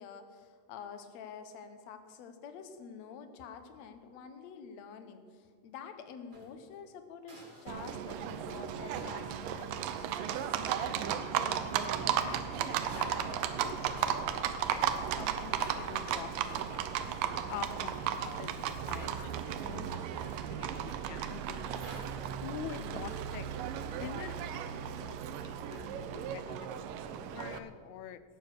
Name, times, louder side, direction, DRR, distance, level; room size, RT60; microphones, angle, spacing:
voice 1, 0.0-10.4, left 6 dB, 65° left, 8 dB, 1.9 m, -48 dB
sound 1, 6.1-6.6 7.3-8.1 8.4-8.6 8.9-9.4 11.4-11.9 12.3-14.5 14.8-15.1 15.4-16.4 17.3-17.6 17.9-18.0 19.0-19.3 20.1-20.5 21.8-22.3 23.3-24.1, right 1 dB, 35° right, 0.7 m, -52 dB
Livestock farm animals working animals, 7.7-27.6, right 9 dB, 80° right, 2.4 m, -35 dB
voice 2, 12.0-16.9 17.5-21.8 22.4-23.6 23.9-28.2, left 10 dB, 90° left, 11 dB, 1.6 m, -47 dB
18.0 x 7.1 x 6.5 m, 2.1 s
omnidirectional pair, 3.9 m